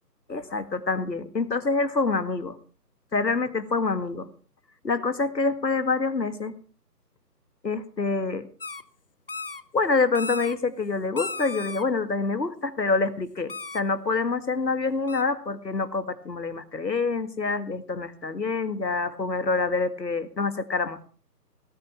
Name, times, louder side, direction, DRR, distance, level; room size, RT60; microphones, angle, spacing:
voice 1, 0.3-2.6 3.1-4.3 4.8-6.5 7.6-8.5 9.7-21.1, left 4 dB, 85° left, 12 dB, 2.1 m, -26 dB
sound 1, 8.6-8.8 9.3-9.6 10.1-10.6 11.2-11.8 13.5-13.8 15.1-15.2, left 3 dB, 35° left, 0.6 m, -35 dB
17.5 x 10.5 x 5.8 m, 0.39 s
figure-of-eight pair, 155°, 49 cm